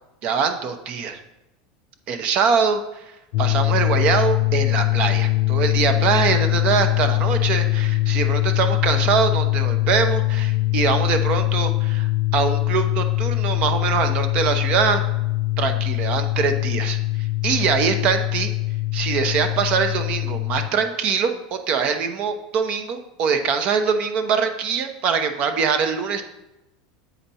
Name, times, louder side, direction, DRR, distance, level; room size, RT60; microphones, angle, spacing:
voice 1, 0.2-1.2 2.1-3.0 3.4-15.0 15.6-17.0 17.4-18.5 18.9-26.2, right 6 dB, 45° right, 7 dB, 0.7 m, -23 dB
sound 1, 3.3-20.7, left 20 dB, 70° left, 0.5 m, -22 dB
8.0 x 5.0 x 4.2 m, 0.92 s
supercardioid pair, 150°, 3 cm